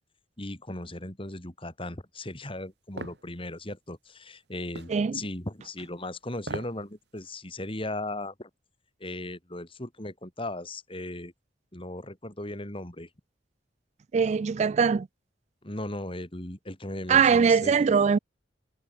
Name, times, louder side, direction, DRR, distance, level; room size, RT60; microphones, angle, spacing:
voice 1, 0.4-8.5 9.0-11.3 11.7-13.1 15.6-17.7, left 1 dB, 30° left, 4.8 m, -37 dB
sound 1, 3.0-3.2 4.8-5.0 6.4-6.8 7.2-7.3, right 2 dB, 65° right, 2.6 m, -37 dB
voice 2, 4.9-5.2 14.1-15.1 17.1-18.2, right 6 dB, 40° right, 0.3 m, -21 dB
head